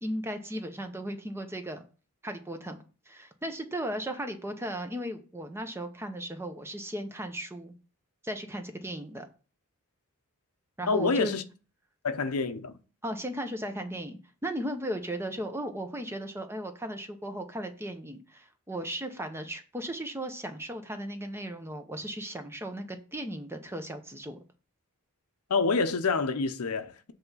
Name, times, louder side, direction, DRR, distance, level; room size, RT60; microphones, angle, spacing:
voice 1, 0.0-1.8 2.2-7.7 8.2-9.3 10.8-11.3 13.0-24.4, right 1 dB, 10° right, 0.7 m, -36 dB
voice 2, 10.9-11.4 12.0-12.8 25.5-27.1, left 4 dB, 85° left, 0.7 m, -27 dB
7.7 x 3.5 x 5.5 m
head